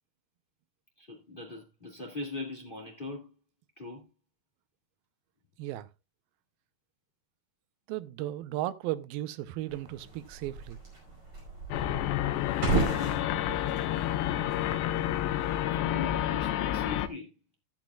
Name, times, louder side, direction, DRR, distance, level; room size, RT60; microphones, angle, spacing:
voice 1, 1.0-3.3 3.8-4.1 15.7-17.3, left 3 dB, 45° left, 0.6 m, -41 dB
voice 2, 7.9-10.8, right 14 dB, 75° right, 2.3 m, -35 dB
sound 1, 9.7-15.6, right 4 dB, 30° right, 5.7 m, -36 dB
sound 2, 11.7-17.1, left 12 dB, 90° left, 3.0 m, -29 dB
13.5 x 10.5 x 2.3 m
omnidirectional pair, 4.8 m